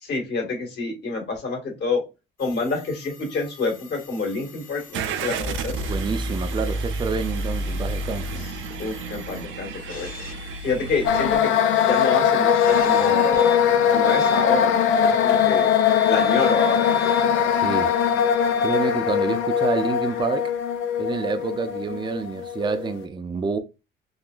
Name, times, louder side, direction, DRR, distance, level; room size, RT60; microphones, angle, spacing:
voice 1, 0.0-2.0 2.4-5.9 8.4-8.5 8.8-10.1 10.6-11.5 11.8-15.8 16.1-17.2, left 4 dB, 60° left, 1.9 m, -28 dB
sound 1, 2.4-13.6 14.0-20.2, left 3 dB, 45° left, 1.3 m, -43 dB
Car / Engine starting, 4.9-11.4, right 2 dB, 75° right, 0.6 m, -30 dB
voice 2, 5.8-8.4 17.6-18.0 18.6-20.5 21.0-23.6, right 4 dB, 25° right, 0.5 m, -28 dB
sound 2, 11.0-22.9, left 8 dB, 85° left, 0.5 m, -21 dB
3.8 x 2.9 x 2.4 m
cardioid pair, 90°, 20 cm